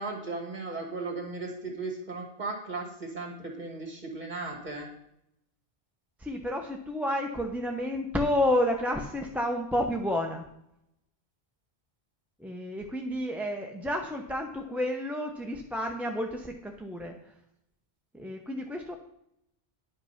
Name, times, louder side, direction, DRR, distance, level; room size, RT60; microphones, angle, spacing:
voice 1, 0.0-4.9, right 3 dB, 45° right, 0 dB, 2.2 m, -36 dB
voice 2, 6.2-10.5 12.4-17.1 18.1-18.9, left 1 dB, ahead, 2 dB, 0.7 m, -30 dB
10.0 x 5.6 x 5.7 m, 0.78 s
omnidirectional pair, 1.0 m